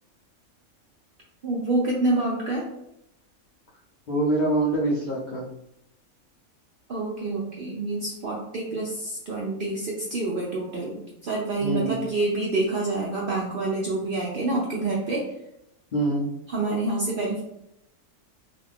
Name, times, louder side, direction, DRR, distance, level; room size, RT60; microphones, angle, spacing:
voice 1, 1.4-2.7 6.9-15.2 16.5-17.4, right 2 dB, 75° right, -3 dB, 0.5 m, -27 dB
voice 2, 4.1-5.4 11.6-12.0 15.9-16.3, right 1 dB, 60° left, -6 dB, 0.5 m, -24 dB
2.5 x 2.4 x 3.3 m, 0.82 s
omnidirectional pair, 1.5 m